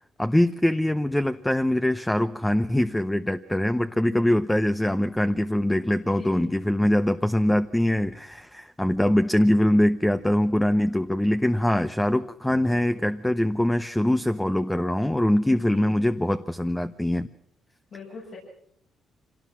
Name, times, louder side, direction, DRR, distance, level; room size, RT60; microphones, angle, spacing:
voice 1, 0.2-17.3, left 1 dB, 5° left, 10 dB, 0.7 m, -23 dB
voice 2, 6.0-6.5 15.5-16.0 17.9-18.4, left 4 dB, 60° left, -3 dB, 6.8 m, -41 dB
25.0 x 18.0 x 6.2 m, 0.72 s
cardioid pair, 90°, 0 cm